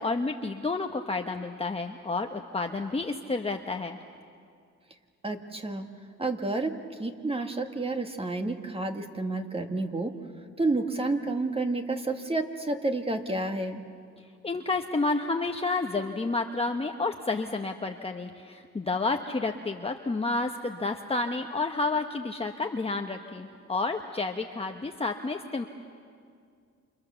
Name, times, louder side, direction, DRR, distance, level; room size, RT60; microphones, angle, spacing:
voice 1, 0.0-4.0 14.4-25.7, left 3 dB, 20° left, 3 dB, 1.1 m, -30 dB
voice 2, 5.2-5.9 6.2-10.1 10.6-13.8, right 2 dB, 20° right, 5 dB, 1.9 m, -30 dB
29.0 x 27.5 x 7.0 m, 2.2 s
cardioid pair, 100°, 31 cm